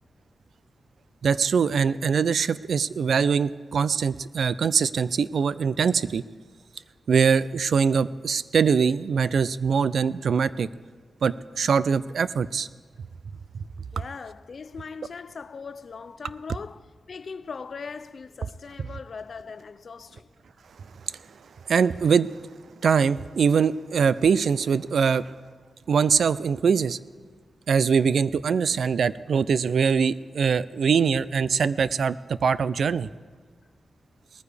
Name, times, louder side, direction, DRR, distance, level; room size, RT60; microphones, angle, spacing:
voice 1, 1.2-6.2 7.1-10.7 11.2-12.7 13.5-13.6 21.7-22.3 22.8-25.3 25.9-27.0 27.7-33.1, right 6 dB, 70° right, 0.3 m, -23 dB
voice 2, 13.9-20.3, left 5 dB, 50° left, 0.4 m, -40 dB
20.0 x 14.0 x 3.4 m
wide cardioid pair, 170°, 0 cm